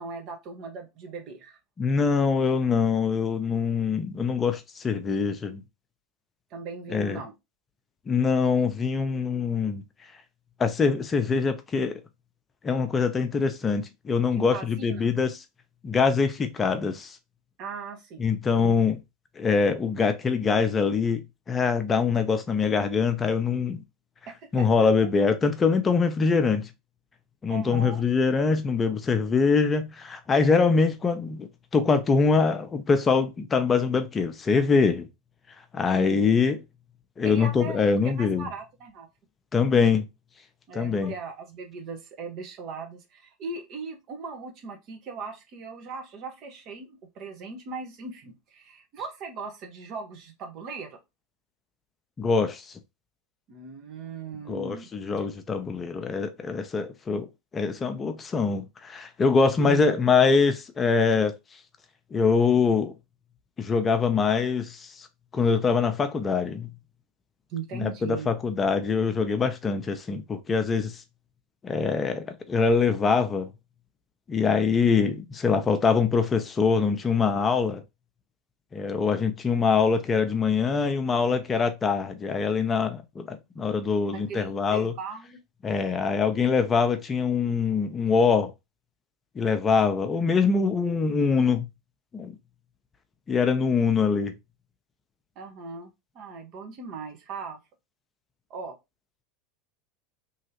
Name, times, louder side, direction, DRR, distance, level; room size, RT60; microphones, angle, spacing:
voice 1, 0.0-1.6 6.5-7.3 14.4-15.1 17.6-18.8 24.4-24.7 27.5-28.0 35.9-36.2 37.2-37.9 38.1-39.1 40.7-51.0 53.5-54.9 59.6-59.8 67.5-68.3 84.1-85.4 95.4-95.9 96.1-97.6 98.5-98.7, right 4 dB, 50° right, 1.0 m, -38 dB
voice 2, 1.8-5.6 6.9-7.2 8.1-9.8 10.6-12.0 12.6-15.4 15.8-17.2 18.2-19.0 19.4-23.8 24.5-26.7 27.4-31.5 31.7-35.1 35.7-36.6 37.2-38.5 39.5-40.1 40.7-41.1 52.2-52.7 54.5-57.3 57.5-61.3 62.1-63.0 63.6-65.1 65.3-66.7 67.7-71.0 71.6-73.5 74.3-77.8 78.7-84.9 85.6-88.5 89.4-91.7 92.1-92.4 93.3-94.4, left 5 dB, 25° left, 0.6 m, -24 dB
3.1 x 2.8 x 2.9 m
hypercardioid pair, 80°, 0 cm